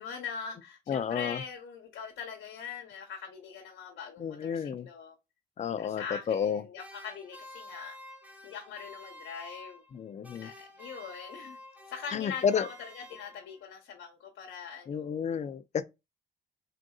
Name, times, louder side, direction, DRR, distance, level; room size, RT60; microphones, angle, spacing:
voice 1, 0.0-5.1 5.8-8.0 8.4-9.8 10.4-11.6 11.9-15.1, left 6 dB, 75° left, 0.9 m, -42 dB
voice 2, 0.9-1.4 4.2-4.9 5.6-6.6 9.9-10.5 12.1-12.7 14.9-15.8, left 7 dB, 35° left, 0.4 m, -31 dB
sound 1, 6.8-10.0 10.2-13.6, left 1 dB, 5° right, 0.9 m, -50 dB
3.6 x 2.6 x 2.3 m
cardioid pair, 90°, 20 cm